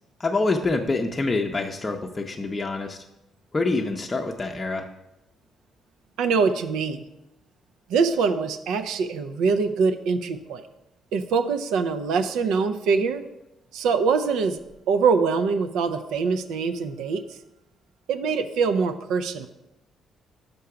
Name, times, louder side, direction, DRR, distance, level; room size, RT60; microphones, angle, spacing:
voice 1, 0.2-3.0 3.5-4.8, left 3 dB, 25° left, 2 dB, 0.6 m, -26 dB
voice 2, 6.2-7.0 7.9-10.6 11.1-13.2 13.7-14.6 14.9-17.2 18.1-19.5, right 5 dB, 90° right, 8 dB, 0.5 m, -23 dB
5.7 x 5.3 x 4.8 m, 0.89 s
cardioid pair, 90°, 0 cm